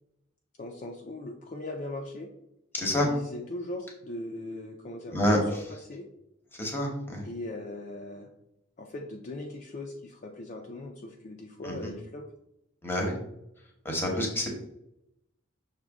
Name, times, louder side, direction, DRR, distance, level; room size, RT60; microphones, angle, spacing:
voice 1, 0.6-2.3 3.0-5.2 5.5-6.1 7.2-8.3 8.8-12.3, left 2 dB, 40° left, 1 dB, 0.4 m, -39 dB
voice 2, 2.7-3.1 5.1-5.6 6.6-7.2 11.6-11.9 12.8-13.1 13.8-14.5, left 1 dB, 10° left, 0 dB, 0.9 m, -27 dB
6.1 x 2.2 x 3.5 m, 0.82 s
head